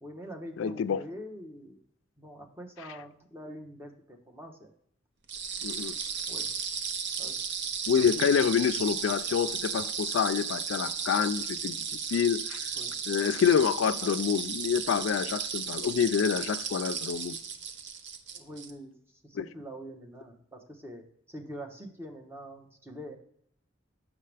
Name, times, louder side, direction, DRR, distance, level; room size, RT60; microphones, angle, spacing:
voice 1, 0.0-1.8 2.2-4.7 6.3-6.5 7.2-7.6 8.2-8.3 12.8-13.0 18.3-18.9 19.2-23.2, equal, 10° right, 0.9 m, -44 dB
voice 2, 0.6-1.0 5.6-6.0 7.9-12.7 13.1-17.4 19.3-19.5, left 7 dB, 80° left, 0.3 m, -27 dB
sound 1, 5.3-18.7, right 6 dB, 60° right, 0.7 m, -35 dB
6.6 x 6.0 x 3.3 m
head